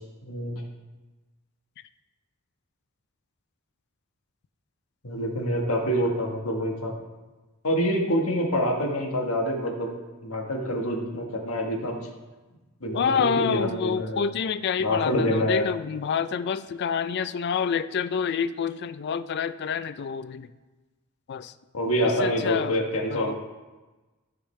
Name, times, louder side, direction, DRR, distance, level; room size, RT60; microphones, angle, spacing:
voice 1, 0.2-0.6 5.0-7.0 7.6-10.0 10.2-12.1 12.8-14.2 14.8-15.6 21.7-23.3, equal, 80° left, 2 dB, 1.3 m, -26 dB
voice 2, 12.9-20.5 21.3-21.5 22.0-22.8 23.1-23.3, left 6 dB, 50° left, 13 dB, 0.3 m, -28 dB
13.5 x 5.0 x 3.2 m, 1.2 s
head